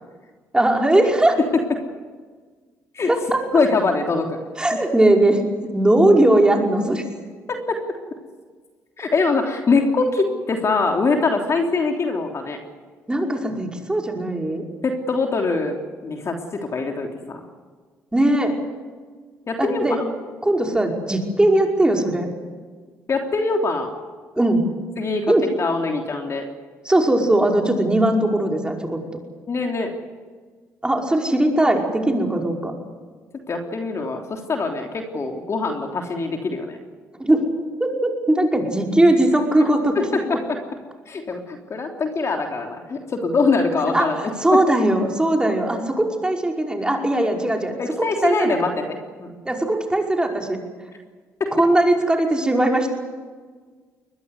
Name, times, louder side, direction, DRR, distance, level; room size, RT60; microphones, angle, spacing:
voice 1, 0.5-1.4 3.1-3.4 4.6-5.4 5.7-7.0 13.1-14.7 18.1-18.5 19.6-20.0 20.4-22.3 24.4-24.6 25.3-25.5 26.9-29.0 30.8-32.7 37.2-37.5 37.8-40.2 43.9-44.1 44.4-48.6 49.5-50.6 51.5-52.9, right 1 dB, 15° right, 1 dB, 5.4 m, -19 dB
voice 2, 3.5-4.4 4.7-4.8 7.5-7.8 9.0-12.6 14.8-15.8 16.0-17.4 19.5-19.8 23.1-23.9 25.0-26.5 29.5-30.0 33.5-36.8 39.9-40.6 41.1-44.3 44.6-44.7 47.8-49.4 51.4-51.5, left 3 dB, 45° left, 3 dB, 3.4 m, -23 dB
22.5 x 20.5 x 8.3 m, 1.5 s
supercardioid pair, 65°, 7 cm